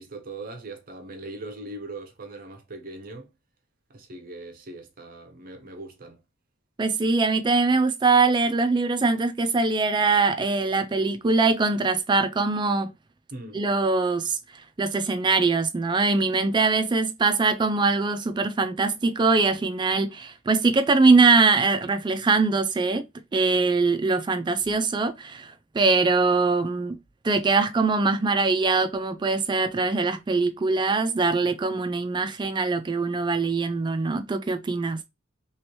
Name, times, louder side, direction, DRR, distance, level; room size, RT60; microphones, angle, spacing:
voice 1, 0.0-3.3 3.9-6.2 13.3-13.6, right 2 dB, 45° right, 0.7 m, -40 dB
voice 2, 6.8-12.9 13.5-14.4 14.8-23.0 23.3-27.0 27.2-35.0, right 3 dB, 25° right, 0.3 m, -22 dB
3.1 x 3.0 x 2.9 m
head